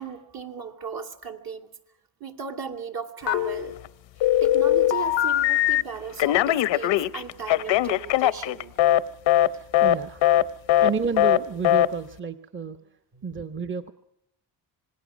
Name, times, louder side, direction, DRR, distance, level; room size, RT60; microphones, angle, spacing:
voice 1, 0.0-1.7 2.2-3.8 4.4-8.8 9.5-9.6 13.1-13.2, right 7 dB, 55° right, 4 dB, 2.7 m, -37 dB
Telephone, 3.3-3.9 4.2-5.8 6.2-9.0 9.3-9.5 9.7-10.0 10.2-10.4 10.7-10.9 11.2-11.4 11.6-11.9, left 13 dB, 85° left, 0.8 m, -20 dB
voice 2, 8.7-9.1 9.4-10.5 10.8-12.8 13.2-13.9, right 5 dB, 30° right, 9 dB, 0.9 m, -31 dB
26.5 x 19.5 x 6.3 m, 0.77 s
cardioid pair, 90°, 43 cm